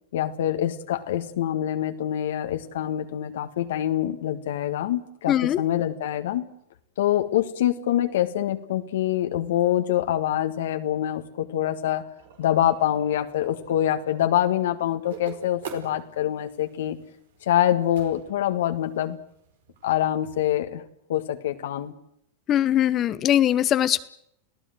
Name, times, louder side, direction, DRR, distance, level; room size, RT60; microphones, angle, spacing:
voice 1, 0.1-6.5 7.0-12.0 12.4-17.0 17.4-19.2 19.8-20.8 21.1-21.9, left 11 dB, 75° left, 6 dB, 1.7 m, -25 dB
voice 2, 5.3-5.6 22.5-24.0, left 11 dB, 30° left, 14 dB, 1.0 m, -21 dB
sound 1, 12.2-20.5, right 7 dB, 75° right, 4.9 m, -46 dB
29.5 x 17.0 x 7.8 m, 0.74 s
hypercardioid pair, 125°, 0 cm